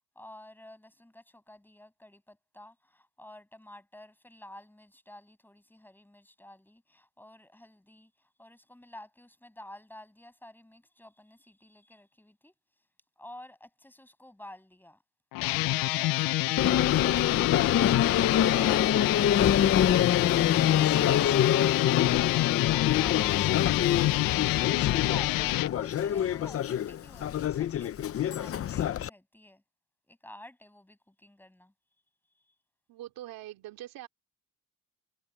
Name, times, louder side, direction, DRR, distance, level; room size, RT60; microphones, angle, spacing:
voice 1, 0.2-12.5 13.2-15.0 15.8-17.0 24.8-29.6 30.1-31.7 32.4-32.5, left 1 dB, 5° left, 7.6 m, -51 dB
sound 1, 15.3-25.7, left 20 dB, 80° left, 0.5 m, -27 dB
Subway metro underground, 16.6-29.1, left 10 dB, 40° left, 0.7 m, -26 dB
voice 2, 18.4-18.8 21.1-21.5 24.6-24.7 32.9-34.1, right 14 dB, 85° right, 2.7 m, -44 dB
cardioid pair, 125°, 34 cm